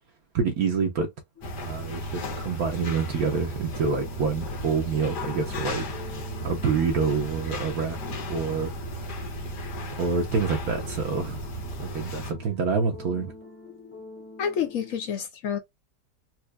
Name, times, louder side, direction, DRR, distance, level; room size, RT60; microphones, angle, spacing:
voice 1, 0.3-1.1 1.6-5.9 6.4-8.7 9.0-9.3 10.0-11.5 11.8-13.3, right 5 dB, 65° right, 1.3 m, -27 dB
sound 1, 1.3-14.9, left 4 dB, 10° left, 0.8 m, -48 dB
sound 2, 1.4-12.3, equal, 80° left, 1.7 m, -35 dB
voice 2, 14.4-15.6, left 8 dB, 65° left, 0.9 m, -28 dB
4.4 x 2.5 x 2.2 m
omnidirectional pair, 1.7 m